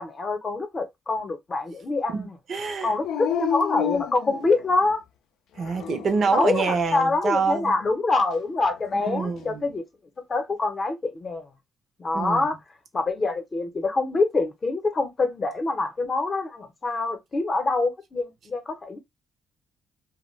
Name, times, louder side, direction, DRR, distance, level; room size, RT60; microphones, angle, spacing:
voice 1, 0.0-2.4 2.8-5.0 6.3-9.8 10.3-11.5 12.0-12.6 12.9-19.0, left 3 dB, 35° left, 0.7 m, -25 dB
voice 2, 2.1-2.9 5.6-7.8 8.9-9.7 12.1-12.6, right 5 dB, 55° right, 0.6 m, -26 dB
Dog, 3.0-4.9 5.6-6.4 8.6-9.5, left 9 dB, 80° left, 0.4 m, -31 dB
2.3 x 2.1 x 3.1 m
cardioid pair, 90°, 0 cm